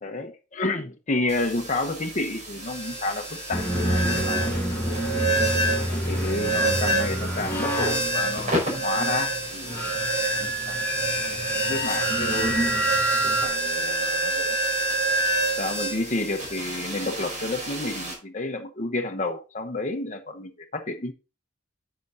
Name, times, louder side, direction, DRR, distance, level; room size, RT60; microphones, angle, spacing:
voice 1, 0.0-4.6 5.7-9.8 10.4-10.8 11.7-12.6 13.2-14.6 15.6-21.1, left 2 dB, 40° left, 0.9 m, -30 dB
sound 1, 1.3-18.1, right 2 dB, 40° right, 4.4 m, -28 dB
sound 2, 3.5-13.5, right 1 dB, 10° left, 2.3 m, -28 dB
10.0 x 6.9 x 2.6 m
head